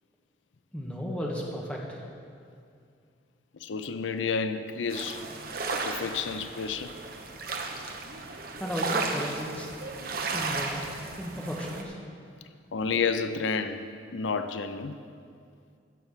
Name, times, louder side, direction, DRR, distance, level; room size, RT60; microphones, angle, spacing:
voice 1, 0.7-2.0 8.6-9.7 10.3-10.9 11.2-12.0, equal, 5° left, -2 dB, 1.5 m, -34 dB
voice 2, 3.6-5.2 5.7-6.9 12.7-15.0, left 5 dB, 90° left, 10 dB, 0.6 m, -31 dB
sound 1, 4.9-11.8, right 3 dB, 50° right, 1.1 m, -34 dB
15.5 x 5.9 x 7.2 m, 2.3 s
head